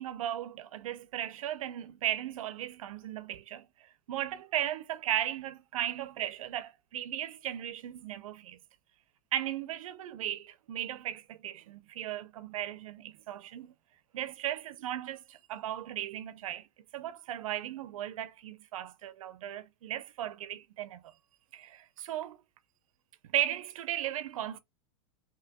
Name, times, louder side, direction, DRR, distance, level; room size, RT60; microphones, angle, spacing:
voice 1, 0.0-8.6 9.3-13.7 14.1-16.7 16.9-21.1 21.5-22.4 23.3-24.6, right 12 dB, 85° right, 0.6 m, -36 dB
6.0 x 2.9 x 2.3 m
supercardioid pair, 130°, 17 cm